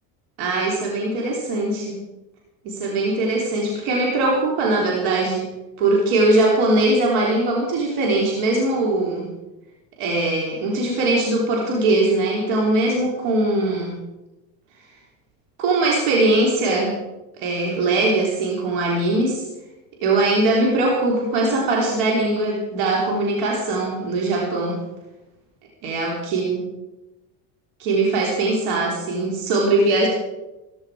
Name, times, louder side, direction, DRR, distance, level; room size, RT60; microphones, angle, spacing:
voice 1, 0.4-2.0 2.6-5.5 5.8-9.3 10.0-13.9 15.6-17.0 17.4-19.5 20.0-24.8 25.8-26.6 27.8-30.1, right 2 dB, 75° right, -2 dB, 3.5 m, -21 dB
15.0 x 14.0 x 4.8 m, 1.0 s
cardioid pair, 130°, 48 cm